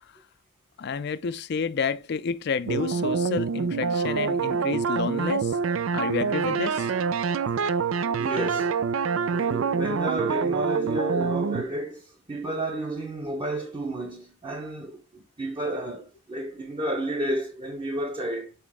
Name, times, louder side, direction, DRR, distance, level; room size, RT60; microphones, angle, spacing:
voice 1, 0.8-5.6 5.9-6.9, left 5 dB, 55° left, 0.4 m, -30 dB
sound 1, 2.7-11.6, right 5 dB, 80° right, 0.4 m, -26 dB
voice 2, 8.2-8.8 9.3-18.5, right 1 dB, 25° right, 0.8 m, -31 dB
7.0 x 4.1 x 3.5 m
head